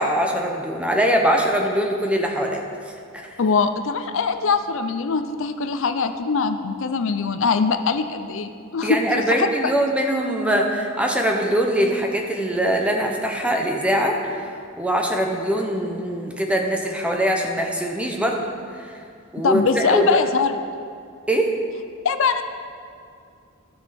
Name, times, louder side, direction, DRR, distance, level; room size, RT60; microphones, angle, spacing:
voice 1, 0.0-2.6 3.1-3.3 8.8-14.5 14.8-18.4 18.9-19.0 19.3-20.2 21.3-21.5, equal, 5° right, 1 dB, 0.9 m, -22 dB
voice 2, 3.4-9.7 19.4-20.5 22.0-22.4, left 5 dB, 60° left, 9 dB, 0.5 m, -22 dB
16.0 x 6.3 x 4.3 m, 2.4 s
head